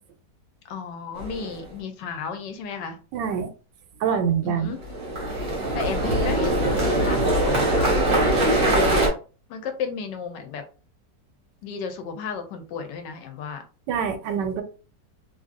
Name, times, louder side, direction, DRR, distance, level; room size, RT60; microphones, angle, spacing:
voice 1, 0.6-3.0 4.4-4.8 5.7-9.1 9.5-10.6 11.6-13.7, left 5 dB, 80° left, 1.3 m, -33 dB
sound 1, 1.1-1.6 4.8-9.1, right 1 dB, 45° right, 1.2 m, -22 dB
voice 2, 3.1-3.5 4.0-4.7 13.9-14.6, right 7 dB, 80° right, 1.2 m, -25 dB
3.0 x 2.6 x 2.4 m
omnidirectional pair, 1.9 m